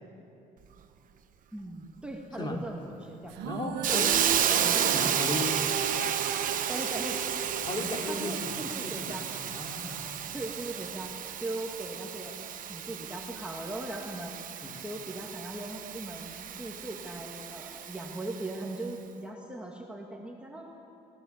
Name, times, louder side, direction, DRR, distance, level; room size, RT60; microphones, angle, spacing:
voice 1, 1.5-3.3 3.9-4.0 6.7-7.2 8.1-9.3 10.3-11.1 11.4-14.3 14.8-20.7, right 1 dB, 5° right, -1 dB, 2.2 m, -39 dB
sound 1, 3.3-8.8, right 7 dB, 85° right, 1.3 m, -37 dB
voice 2, 3.4-4.2 4.5-5.6 7.6-9.2 9.4-10.3 14.6-14.8, left 1 dB, 25° left, 1 dB, 3.2 m, -36 dB
Hiss, 3.8-18.6, right 9 dB, 55° right, 1.1 m, -32 dB
23.5 x 18.5 x 7.4 m, 2.8 s
cardioid pair, 110°, 17 cm